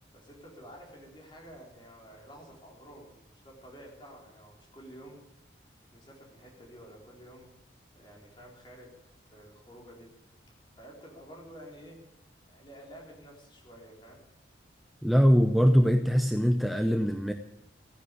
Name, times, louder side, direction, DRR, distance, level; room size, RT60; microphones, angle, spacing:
voice 1, 0.1-5.2 5.7-7.5 7.9-8.9 9.2-10.1 10.8-12.0 12.5-14.2, equal, 25° left, -1 dB, 4.1 m, -50 dB
voice 2, 15.0-17.3, equal, ahead, 7 dB, 0.5 m, -22 dB
16.0 x 10.0 x 8.3 m, 0.88 s
head